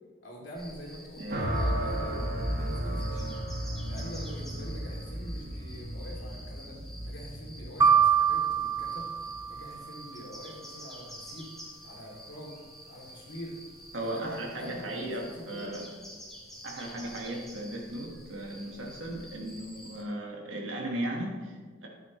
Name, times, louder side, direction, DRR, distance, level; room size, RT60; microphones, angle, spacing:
voice 1, 0.2-2.2 2.5-3.3 3.8-11.6 11.8-13.6 14.0-16.0, equal, 75° left, -3 dB, 2.7 m, -45 dB
sound 1, 0.5-20.0, equal, ahead, 2.1 m, -49 dB
sound 2, 1.3-9.6, right 1 dB, 55° right, 1.6 m, -34 dB
sound 3, 7.8-9.9, right 7 dB, 20° right, 0.3 m, -25 dB
voice 2, 13.9-15.8 16.6-21.9, right 1 dB, 90° right, -1 dB, 1.6 m, -36 dB
11.0 x 9.6 x 3.1 m, 1.4 s
head